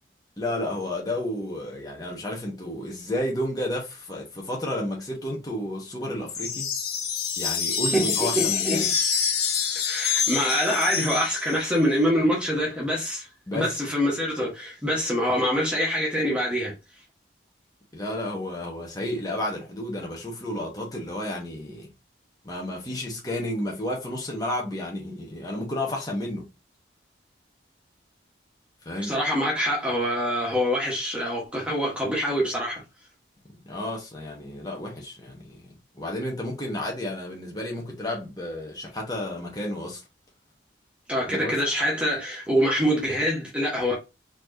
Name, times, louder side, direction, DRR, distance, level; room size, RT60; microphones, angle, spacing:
voice 1, 0.4-6.7 7.4-8.9 13.5-13.8 17.9-21.9 22.4-26.5 28.8-29.1 33.5-40.0 41.3-41.5, left 1 dB, 20° left, 1.1 m, -32 dB
sound 1, 6.3-11.8, left 6 dB, 55° left, 1.1 m, -26 dB
voice 2, 7.9-8.9 9.8-13.3 13.5-16.7 29.0-32.8 41.1-43.9, equal, 5° right, 1.2 m, -25 dB
4.3 x 2.9 x 2.7 m
head